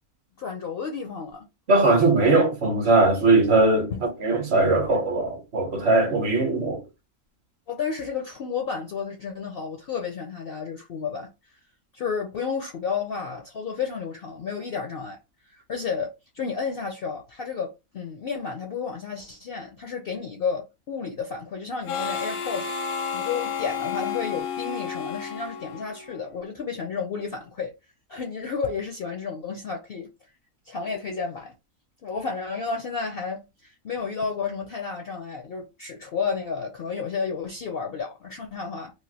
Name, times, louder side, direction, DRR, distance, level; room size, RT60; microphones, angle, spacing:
voice 1, 0.4-1.5 3.9-4.0 7.7-11.3 11.9-15.2 15.5-22.7 23.1-27.7 28.1-30.1 30.7-31.5 32.0-38.9, left 5 dB, 60° left, 0.6 m, -31 dB
voice 2, 1.7-6.8, right 2 dB, 55° right, 0.9 m, -20 dB
Harmonica, 21.9-26.3, left 6 dB, 85° left, 1.2 m, -31 dB
3.2 x 2.4 x 2.7 m
omnidirectional pair, 1.5 m